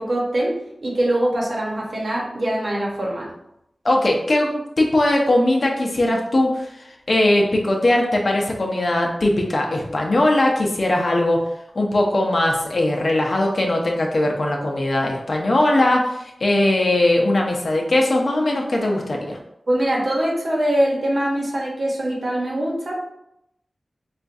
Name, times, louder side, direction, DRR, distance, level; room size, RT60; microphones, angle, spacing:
voice 1, 0.0-3.3 19.7-23.0, right 1 dB, 65° right, -3 dB, 1.0 m, -23 dB
voice 2, 3.8-6.7 7.1-11.4 11.8-19.4, left 1 dB, 60° left, 0 dB, 0.7 m, -20 dB
4.4 x 2.4 x 2.6 m, 0.80 s
wide cardioid pair, 60°, 0 cm